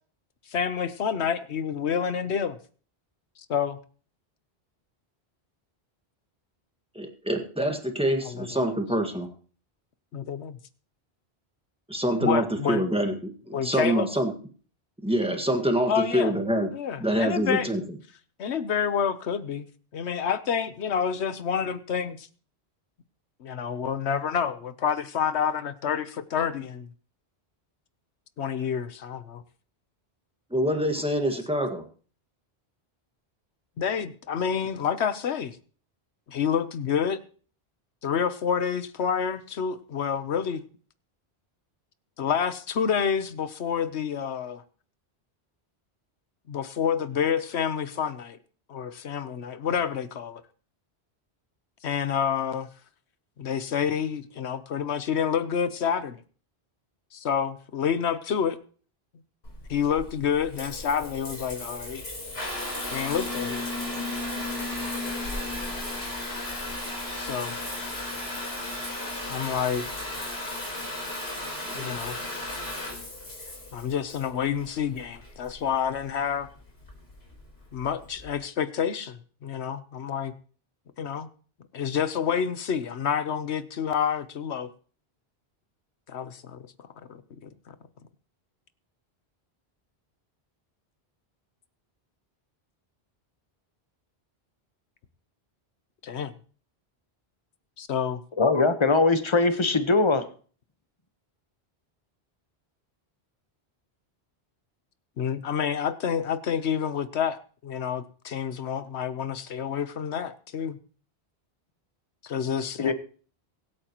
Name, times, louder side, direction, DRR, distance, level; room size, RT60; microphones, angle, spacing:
voice 1, 0.5-2.6 3.5-3.8 8.2-8.7 10.1-10.6 12.2-12.8 13.5-14.1 15.9-16.4 16.7-17.7 18.4-19.7 19.9-22.3 23.4-26.9 28.4-29.4 33.8-35.6 36.3-37.2 38.0-40.6 42.2-44.6 46.5-48.4 48.7-50.4 51.8-52.7 53.4-56.2 57.1-58.6 59.7-62.0 62.9-63.7 67.2-67.5 69.3-69.8 71.7-72.2 73.7-76.5 77.7-80.3 81.0-81.3 81.7-84.7 86.1-86.6 87.1-87.2 87.7-87.8 96.0-96.3 97.8-98.2 105.2-110.8 112.2-112.9, left 7 dB, 90° left, 13 dB, 1.2 m, -28 dB
voice 2, 6.9-9.3 11.9-14.3 15.0-16.7 17.0-17.8 30.5-31.8 71.6-72.0, right 1 dB, 5° right, 4 dB, 1.6 m, -26 dB
Water tap faucet / Bathtub (filling or washing) / Trickle dribble, 59.4-78.3, left 2 dB, 70° left, 4.3 m, -35 dB
voice 3, 98.4-100.2 112.8-112.9, left 3 dB, 30° left, 9 dB, 1.0 m, -21 dB
24.0 x 8.9 x 3.0 m, 0.42 s
omnidirectional pair, 1.1 m